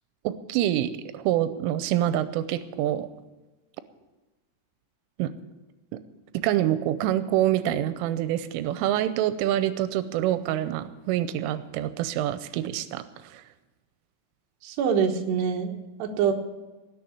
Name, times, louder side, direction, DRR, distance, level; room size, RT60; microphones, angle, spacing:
voice 1, 0.2-3.1 5.2-5.3 6.3-13.4, right 12 dB, 90° right, 12 dB, 3.2 m, -26 dB
voice 2, 14.6-16.3, right 7 dB, 70° right, 3 dB, 3.2 m, -25 dB
19.5 x 6.7 x 9.3 m, 1.1 s
omnidirectional pair, 5.6 m